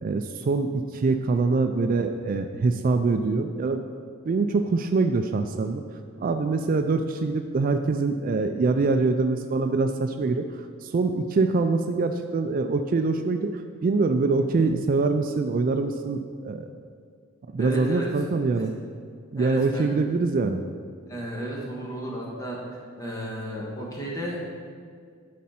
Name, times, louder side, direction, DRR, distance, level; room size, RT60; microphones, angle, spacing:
voice 1, 0.0-3.8 4.2-5.8 6.2-10.5 10.8-16.7 17.5-18.8 19.3-20.6, right 3 dB, 45° right, 7 dB, 0.3 m, -24 dB
voice 2, 17.6-18.1 18.5-18.6 19.3-19.9 21.1-22.6 23.0-24.5, equal, 15° left, -4 dB, 1.5 m, -33 dB
12.0 x 4.2 x 4.3 m, 2.1 s
head